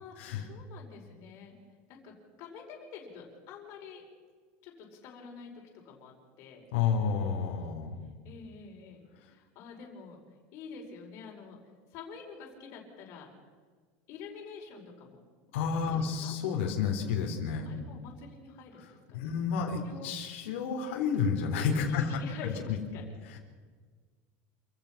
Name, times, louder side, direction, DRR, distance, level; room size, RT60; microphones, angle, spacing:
voice 1, 0.0-1.6 1.9-4.0 4.6-5.5 5.8-6.6 8.2-10.2 10.5-11.6 11.9-13.3 14.1-15.2 15.9-16.4 17.6-19.3 19.8-20.1 21.9-23.1, left 5 dB, 45° left, 0 dB, 5.1 m, -47 dB
voice 2, 6.7-7.9 15.5-17.7 18.8-18.9 19.1-22.2 22.7-22.8 23.3-23.4, left 6 dB, 90° left, 1 dB, 3.9 m, -30 dB
28.0 x 15.5 x 6.0 m, 1.5 s
cardioid pair, 165°, 6 cm